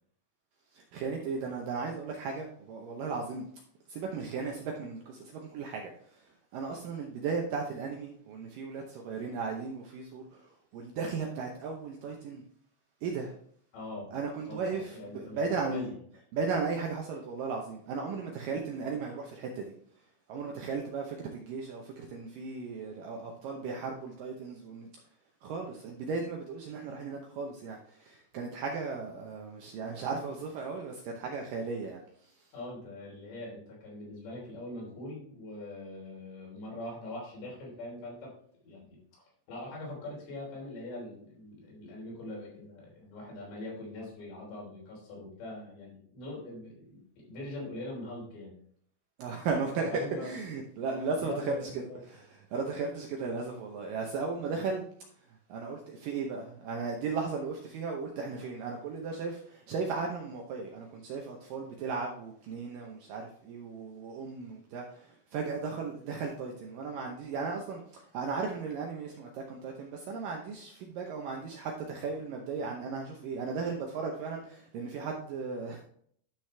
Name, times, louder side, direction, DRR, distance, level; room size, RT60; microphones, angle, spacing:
voice 1, 0.7-3.5 3.9-12.4 13.0-13.3 14.1-15.9 16.3-19.7 20.3-24.9 25.4-32.5 49.2-54.8 55.5-75.8, right 4 dB, 75° right, 1 dB, 2.1 m, -36 dB
voice 2, 13.7-14.1 14.4-15.4 15.7-15.9 32.5-38.3 38.6-39.0 39.5-48.6 49.9-50.3 51.2-52.0, left 1 dB, 80° left, -3 dB, 5.7 m, -42 dB
11.5 x 6.1 x 3.3 m, 0.62 s
omnidirectional pair, 4.9 m